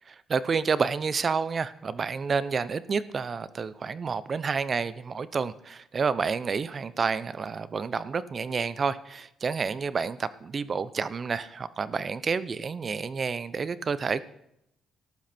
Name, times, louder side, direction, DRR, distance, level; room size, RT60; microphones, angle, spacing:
voice 1, 0.3-14.2, right 5 dB, 40° right, 17 dB, 0.8 m, -29 dB
14.0 x 11.5 x 4.4 m, 0.78 s
cardioid pair, 90°, 0 cm